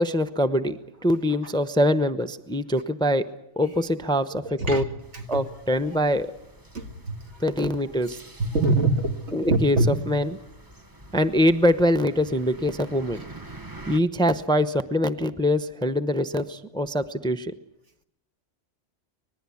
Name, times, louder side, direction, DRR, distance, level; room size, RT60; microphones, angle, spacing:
voice 1, 0.0-3.3 3.6-4.8 5.3-6.3 7.4-8.2 9.3-9.8 10.1-10.4 11.1-13.2 13.9-17.5, equal, 5° left, 0.7 m, -23 dB
sound 1, 5.0-14.0, right 2 dB, 20° right, 1.0 m, -46 dB
voice 2, 5.1-5.5 6.7-7.2 8.4-10.0, right 2 dB, 70° right, 2.2 m, -25 dB
25.0 x 20.5 x 8.5 m
omnidirectional pair, 1.2 m